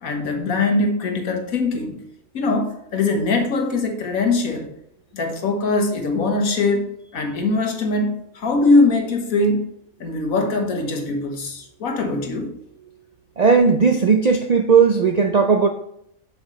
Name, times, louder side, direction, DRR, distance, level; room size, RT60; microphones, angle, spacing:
voice 1, 0.0-2.0 2.3-4.7 5.1-9.7 10.0-12.5, left 3 dB, 80° left, 4 dB, 1.7 m, -21 dB
voice 2, 13.4-15.7, right 5 dB, 65° right, 5 dB, 0.4 m, -16 dB
7.5 x 6.9 x 3.1 m, 0.73 s
omnidirectional pair, 1.4 m